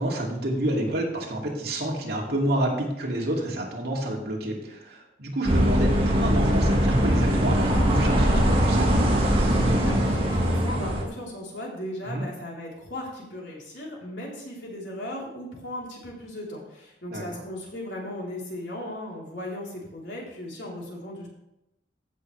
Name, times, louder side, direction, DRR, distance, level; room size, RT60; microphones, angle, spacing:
voice 1, 0.0-8.9 12.0-12.3 17.1-17.4, right 1 dB, 60° right, -2 dB, 2.4 m, -29 dB
sound 1, 5.5-11.0, equal, 30° right, 1.9 m, -21 dB
voice 2, 9.8-21.3, left 1 dB, 90° left, -4 dB, 3.6 m, -37 dB
15.5 x 6.5 x 3.3 m, 0.89 s
head